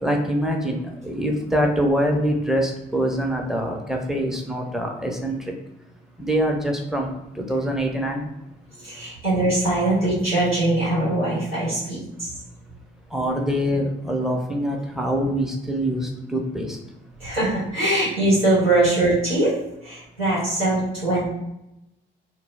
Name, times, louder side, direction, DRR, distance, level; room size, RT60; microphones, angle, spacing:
voice 1, 0.0-5.5 6.2-8.3 13.1-16.8, equal, ahead, 1 dB, 0.5 m, -24 dB
voice 2, 8.7-12.4 17.2-19.5 19.8-21.3, right 2 dB, 90° right, -9 dB, 0.9 m, -22 dB
2.1 x 2.0 x 3.1 m, 0.89 s
figure-of-eight pair, 40°, 29 cm